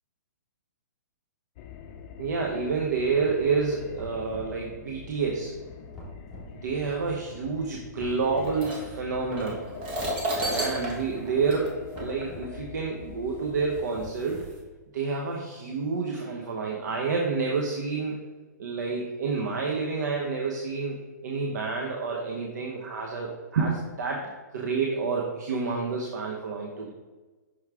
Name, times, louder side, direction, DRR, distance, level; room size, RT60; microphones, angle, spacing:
sound 1, 1.6-13.9, left 7 dB, 35° left, 0.5 m, -45 dB
voice 1, 2.2-5.5 6.6-9.6 10.4-14.4 14.9-18.2 18.6-26.9, right 4 dB, 65° right, -1 dB, 0.9 m, -29 dB
sound 2, 3.9-4.6 5.9-6.5 8.0-8.6 10.0-10.5 11.9-12.5 13.9-14.7, equal, 5° right, 1.9 m, -44 dB
sound 3, 8.4-12.5 13.4-13.5 14.2-14.6, right 1 dB, 40° right, 1.7 m, -33 dB
6.3 x 4.6 x 3.6 m, 1.3 s
hypercardioid pair, 140°, 10 cm